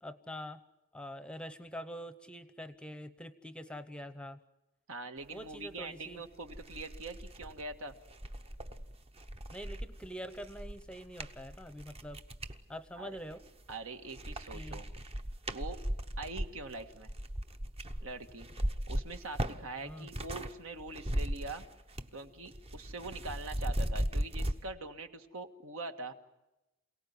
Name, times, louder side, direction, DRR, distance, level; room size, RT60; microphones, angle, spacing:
voice 1, 0.0-0.6 0.9-4.4 5.3-6.2 9.5-12.2 12.7-13.4 14.5-14.8 19.8-20.1, equal, 5° left, 11 dB, 0.8 m, -45 dB
voice 2, 4.9-8.0 13.0-13.2 13.7-14.9 15.5-15.8 16.2-17.1 18.0-18.5 18.9-21.7 22.1-26.1, right 3 dB, 70° right, 7 dB, 1.7 m, -43 dB
sound 1, 5.9-6.0 6.4-12.6 13.2-13.8 14.1-20.5 20.8-22.2 22.5-24.6, equal, 25° right, 0.9 m, -37 dB
27.5 x 18.0 x 9.6 m, 0.98 s
head